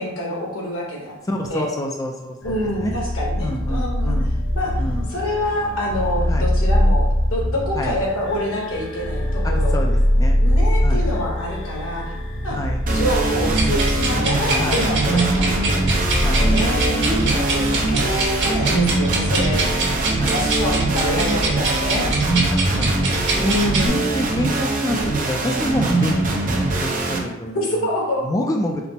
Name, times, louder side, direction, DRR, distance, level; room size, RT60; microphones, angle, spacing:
voice 1, 0.0-1.2 1.5-1.7 2.4-4.1 4.5-4.8 5.1-9.8 10.4-12.1 12.4-12.6 12.9-15.8 16.3-19.7 20.2-22.1 23.3-24.1 27.2-27.3 27.5-28.2, left 1 dB, 85° left, -3 dB, 1.3 m, -26 dB
voice 2, 1.3-2.9 3.4-4.4 4.8-5.0 6.3-6.4 7.8-7.9 9.4-10.4 10.8-11.1 12.5-13.0 14.5-15.3 16.2-16.5 17.5-18.1 19.6-20.5 20.9-21.4 22.3-23.1 23.5-27.9 28.2-28.9, left 1 dB, 15° left, 1 dB, 0.3 m, -28 dB
sound 1, 2.4-18.4, left 1 dB, 65° left, 0.7 m, -23 dB
sound 2, 12.9-27.2, right 2 dB, 40° right, 0.6 m, -22 dB
sound 3, 13.5-23.9, right 2 dB, 60° right, 1.4 m, -25 dB
4.2 x 2.0 x 4.0 m, 1.1 s
head